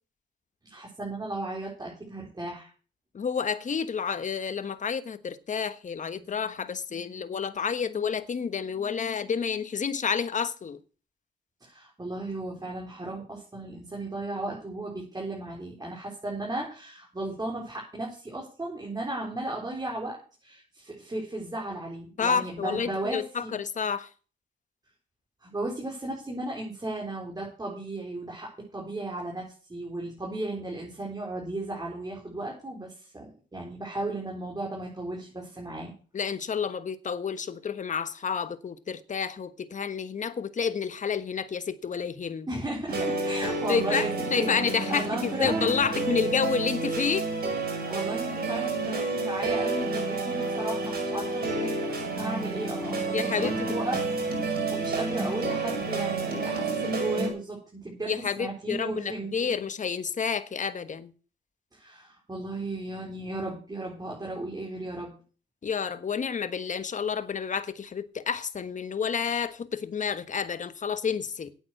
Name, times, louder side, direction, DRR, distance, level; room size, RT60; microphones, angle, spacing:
voice 1, 0.6-2.7 11.6-20.2 20.4-23.6 25.4-29.4 29.7-35.9 42.5-44.1 44.4-45.7 47.9-59.7 61.7-65.1, right 2 dB, 20° right, 4.3 m, -35 dB
voice 2, 3.1-10.8 22.2-24.1 36.1-42.5 43.7-47.3 53.1-53.7 58.1-61.1 65.6-71.5, left 6 dB, 40° left, 1.3 m, -30 dB
sound 1, 42.9-57.3, right 3 dB, 50° right, 7.1 m, -30 dB
9.0 x 8.8 x 7.9 m
cardioid pair, 90°, 20 cm